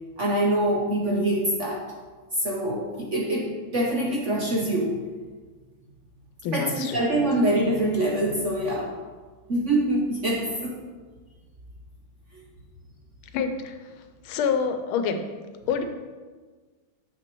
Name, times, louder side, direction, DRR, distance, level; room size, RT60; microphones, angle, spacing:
voice 1, 0.2-1.8 2.4-3.5 3.7-4.9 6.5-8.9 9.5-10.7, right 1 dB, 55° right, -1 dB, 0.9 m, -24 dB
voice 2, 6.4-7.0 13.3-13.8 14.2-15.2 15.7-15.8, left 6 dB, 90° left, 7 dB, 1.6 m, -26 dB
6.9 x 5.9 x 4.5 m, 1.4 s
omnidirectional pair, 2.2 m